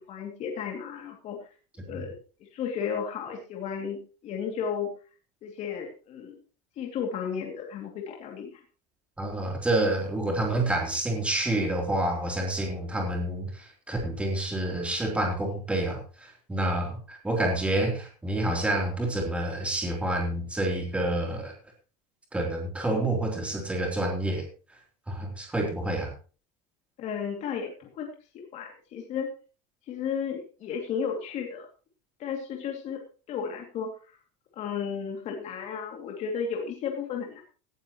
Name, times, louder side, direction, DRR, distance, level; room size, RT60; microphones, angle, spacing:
voice 1, 0.1-1.4 1.8-4.9 5.4-6.3 6.8-8.5 27.0-28.1 28.3-29.3 29.9-31.7 32.2-33.0 33.3-33.9 34.6-37.4, left 7 dB, 35° left, 0 dB, 2.7 m, -33 dB
voice 2, 9.2-21.5 22.3-24.5 25.1-26.1, right 1 dB, 5° right, 0 dB, 3.5 m, -28 dB
18.0 x 12.0 x 3.1 m, 0.36 s
cardioid pair, 175°, 21 cm